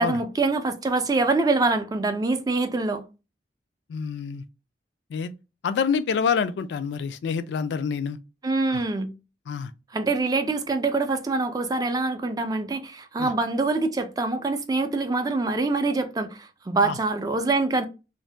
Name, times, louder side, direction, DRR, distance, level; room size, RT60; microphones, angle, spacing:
voice 1, 0.0-3.0 8.4-9.1 9.9-17.9, right 3 dB, 20° right, 0.3 m, -25 dB
voice 2, 3.9-4.4 5.1-5.3 5.6-8.2 8.7-8.8 9.5-9.7 13.2-13.3 16.8-17.0, left 6 dB, 75° left, 0.3 m, -27 dB
2.6 x 2.1 x 3.2 m
head